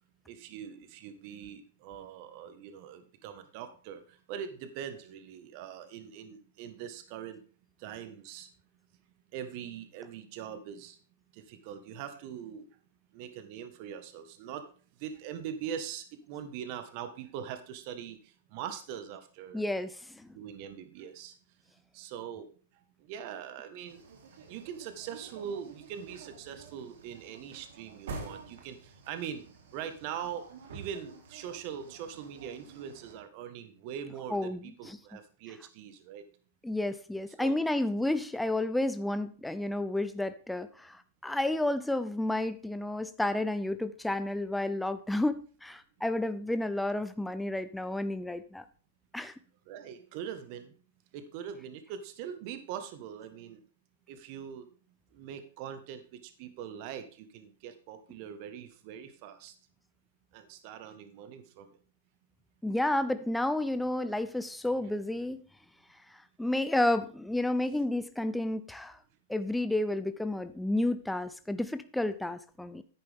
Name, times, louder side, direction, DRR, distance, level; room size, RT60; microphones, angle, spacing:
voice 1, 0.3-7.4 7.8-8.5 9.3-11.0 11.3-12.7 13.1-14.7 15.0-19.6 20.3-21.3 21.9-22.5 23.0-24.1 24.5-29.4 29.7-30.5 30.7-36.2 37.4-37.6 49.7-50.7 51.1-53.6 54.1-54.7 55.1-59.5 60.3-61.8, right 8 dB, 45° right, 10 dB, 1.4 m, -42 dB
voice 2, 19.5-20.3 34.3-35.0 36.6-48.6 49.1-49.3 62.6-65.4 66.1-69.0 69.3-72.8, left 1 dB, 5° left, 11 dB, 0.4 m, -31 dB
sound 1, 23.9-33.2, right 4 dB, 70° right, 2.9 m, -49 dB
10.5 x 8.7 x 3.5 m, 0.38 s
hypercardioid pair, 145°, 0 cm